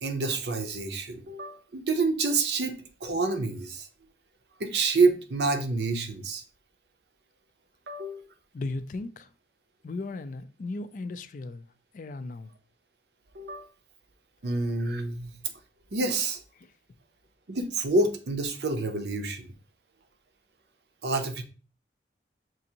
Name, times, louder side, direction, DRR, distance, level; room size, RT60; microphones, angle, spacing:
voice 1, 0.0-3.9 4.6-6.4 7.9-8.3 13.3-13.7 14.4-15.4 15.9-16.4 17.5-19.5 21.0-21.4, right 3 dB, 70° right, 0.7 m, -28 dB
voice 2, 8.5-9.3 9.8-11.7 11.9-12.5 16.6-16.7, left 3 dB, 45° left, 0.3 m, -36 dB
6.1 x 2.6 x 2.8 m
head